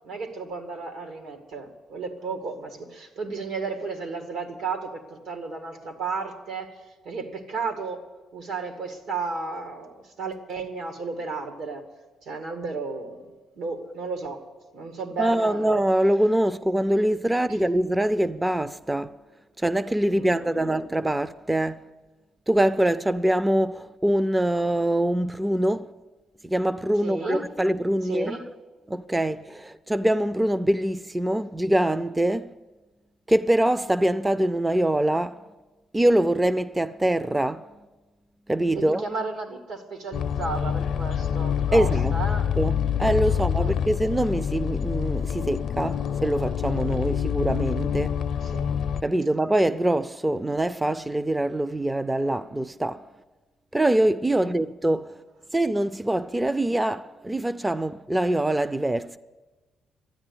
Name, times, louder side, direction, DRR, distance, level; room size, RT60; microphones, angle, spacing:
voice 1, 0.0-6.8 7.0-8.0 8.3-11.8 12.2-14.4 14.7-15.7 17.5-17.6 20.1-20.7 27.0-27.5 28.0-28.4 38.7-42.5 43.3-43.7 48.4-48.7 54.4-54.5, right 4 dB, 80° right, 2.1 m, -33 dB
voice 2, 15.2-19.2 19.6-21.9 22.5-25.9 26.4-28.4 28.9-32.5 33.3-35.4 35.9-37.7 38.5-39.0 41.7-42.1 42.6-48.2 49.0-53.0 53.7-55.2 55.5-59.2, right 1 dB, 10° right, 0.4 m, -24 dB
sound 1, 40.1-49.0, left 8 dB, 65° left, 0.5 m, -26 dB
12.5 x 9.8 x 9.8 m
cardioid pair, 100°, 0 cm